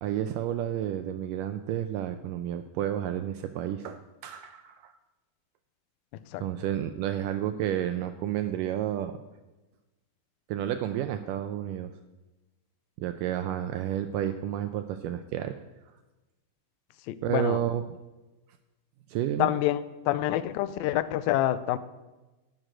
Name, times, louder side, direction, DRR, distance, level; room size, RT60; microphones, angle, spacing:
voice 1, 0.0-4.9 6.4-9.1 10.5-11.9 13.0-15.6 17.2-17.8 19.1-19.5, right 11 dB, 85° right, 9 dB, 1.9 m, -31 dB
voice 2, 17.1-17.6 19.4-21.8, left 13 dB, 85° left, 14 dB, 2.3 m, -27 dB
11.0 x 7.5 x 9.0 m, 1.1 s
omnidirectional pair, 4.3 m